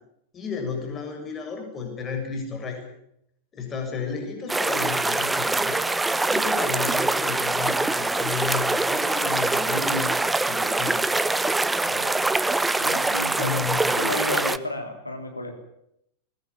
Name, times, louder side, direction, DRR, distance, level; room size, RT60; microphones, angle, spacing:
voice 1, 0.3-2.8 3.5-11.0 13.3-14.1, left 5 dB, 25° left, 3 dB, 7.3 m, -33 dB
sound 1, 4.5-14.6, right 2 dB, 10° right, 0.9 m, -24 dB
voice 2, 11.9-12.2 12.8-15.5, left 2 dB, 85° left, 5 dB, 3.4 m, -33 dB
21.0 x 21.0 x 8.6 m, 0.76 s
figure-of-eight pair, 90°, 0 cm